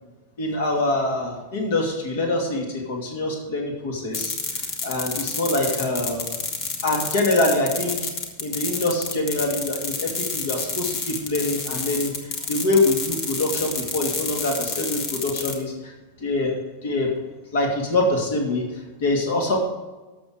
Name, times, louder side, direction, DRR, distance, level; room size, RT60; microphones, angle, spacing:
voice 1, 0.4-4.3 4.8-6.3 6.8-8.0 8.4-12.1 12.5-15.9 16.2-16.5 16.8-17.1 17.5-18.6 19.0-19.6, left 2 dB, 55° left, 1 dB, 2.5 m, -24 dB
sound 1, 4.1-15.6, left 4 dB, 40° left, 1.7 m, -29 dB
13.0 x 7.0 x 4.9 m, 1.2 s
figure-of-eight pair, 90°, 0 cm